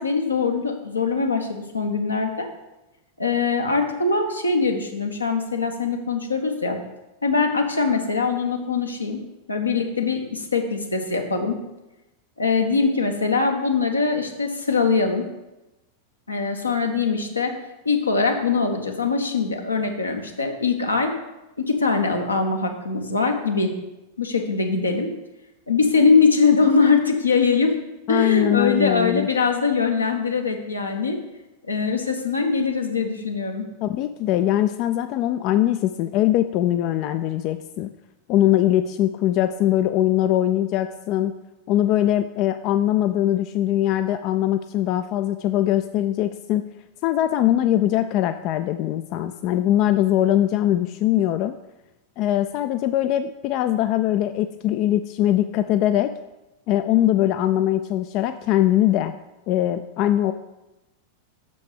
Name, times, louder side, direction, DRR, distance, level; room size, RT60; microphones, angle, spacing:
voice 1, 0.0-2.5 3.2-6.8 7.2-9.2 9.5-11.6 12.4-15.3 16.3-17.5 17.8-21.1 21.6-23.7 24.2-25.1 25.7-27.8 28.1-31.2 31.7-33.7, left 4 dB, 80° left, 3 dB, 1.1 m, -22 dB
voice 2, 28.1-29.3 33.8-37.9 38.3-41.4 41.7-46.7 47.0-51.6 52.2-56.1 56.7-59.1 59.5-60.3, left 12 dB, 40° left, 10 dB, 0.3 m, -21 dB
6.5 x 5.3 x 6.5 m, 0.99 s
figure-of-eight pair, 90°, 0 cm